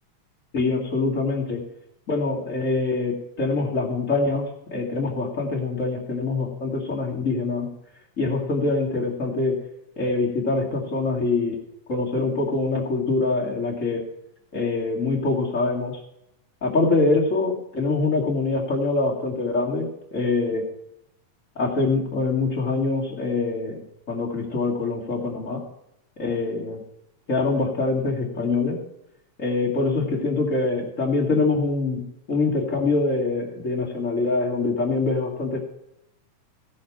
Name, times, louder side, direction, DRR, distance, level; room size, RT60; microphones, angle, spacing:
voice 1, 0.5-1.6 2.1-7.7 8.2-9.6 10.0-11.6 11.9-14.0 14.5-15.9 16.6-20.6 21.6-23.8 24.1-25.6 26.2-26.8 27.3-28.8 29.4-32.0 32.3-35.7, left 3 dB, 25° left, -3 dB, 2.1 m, -24 dB
16.5 x 6.6 x 5.9 m, 0.81 s
omnidirectional pair, 3.8 m